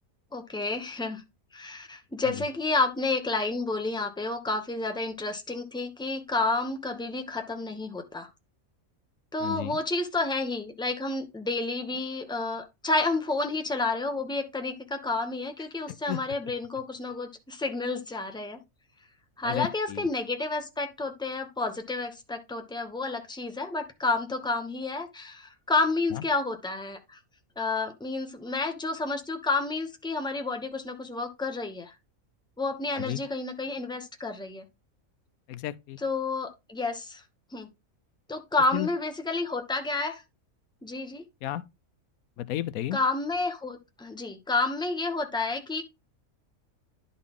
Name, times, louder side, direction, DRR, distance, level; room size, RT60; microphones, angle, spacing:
voice 1, 0.3-1.2 1.5-8.3 9.3-18.6 19.4-27.2 27.6-31.9 32.6-34.6 36.0-37.2 37.5-37.7 38.3-40.2 40.8-41.2 42.9-45.8, left 3 dB, 5° left, 0.9 m, -30 dB
voice 2, 9.4-9.8 16.1-16.2 19.4-20.1 26.1-26.2 32.9-33.2 35.5-36.0 38.7-38.9 41.4-41.6 42.4-43.0, left 13 dB, 90° left, 1.1 m, -33 dB
11.0 x 4.1 x 3.6 m
omnidirectional pair, 1.4 m